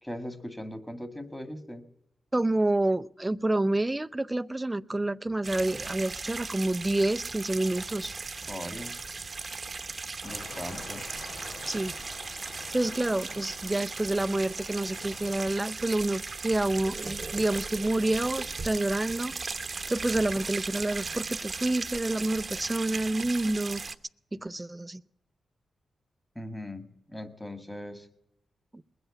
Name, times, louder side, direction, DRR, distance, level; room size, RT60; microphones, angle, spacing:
voice 1, 0.0-1.8 8.5-8.9 10.2-11.0 26.4-28.1, left 1 dB, 10° left, 1.9 m, -39 dB
voice 2, 2.3-8.1 11.7-11.9 12.7-19.3 19.9-23.8 24.3-25.0, right 2 dB, 15° right, 0.5 m, -28 dB
sound 1, 5.4-23.9, right 4 dB, 40° right, 0.9 m, -37 dB
sound 2, 10.2-15.5, left 3 dB, 75° left, 2.0 m, -47 dB
21.5 x 7.9 x 8.2 m
cardioid pair, 85°, 0 cm